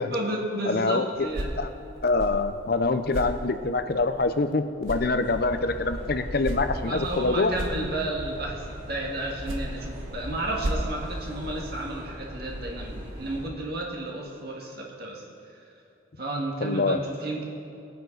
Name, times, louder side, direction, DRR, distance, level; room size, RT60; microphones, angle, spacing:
voice 1, 0.1-1.5 6.8-15.2 16.2-17.4, right 1 dB, 50° right, -1 dB, 1.9 m, -32 dB
voice 2, 0.7-1.3 1.6-1.7 2.0-7.6 16.6-17.0, left 3 dB, 50° left, 10 dB, 0.6 m, -25 dB
sound 1, 1.1-4.5 4.8-8.4 9.2-11.8, right 1 dB, 90° right, 1.3 m, -37 dB
sound 2, 5.2-13.5, equal, 35° right, 3.4 m, -39 dB
20.5 x 9.2 x 4.0 m, 2.7 s
head